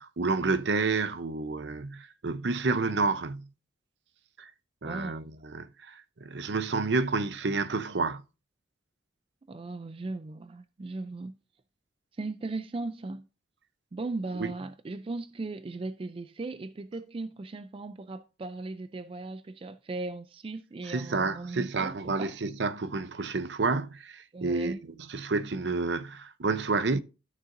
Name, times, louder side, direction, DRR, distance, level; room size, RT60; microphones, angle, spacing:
voice 1, 0.2-3.5 4.4-4.5 4.8-8.2 14.4-14.5 20.9-24.7 25.1-27.0, right 3 dB, 70° right, 0.7 m, -29 dB
voice 2, 4.8-5.3 9.5-11.4 12.1-13.3 13.9-22.3 24.3-24.8, right 3 dB, 30° right, 0.4 m, -37 dB
12.5 x 6.5 x 2.6 m
head